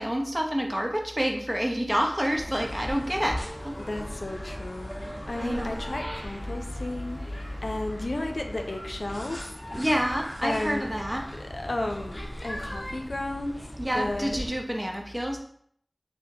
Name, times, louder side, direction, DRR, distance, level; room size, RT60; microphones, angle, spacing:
voice 1, 0.0-3.8 5.4-5.8 9.8-11.3 13.8-15.4, equal, 20° right, 2 dB, 0.7 m, -28 dB
Wind instrument woodwind instrument, 2.0-4.6 4.8-7.6, right 1 dB, 65° right, 0.9 m, -47 dB
sound 1, 2.3-14.5, equal, 40° left, 0.9 m, -38 dB
voice 2, 3.8-9.5 9.7-9.8 10.4-10.9 11.4-14.4, left 2 dB, 90° left, 3 dB, 0.4 m, -34 dB
6.1 x 2.1 x 2.7 m, 0.64 s
wide cardioid pair, 45°, 0 cm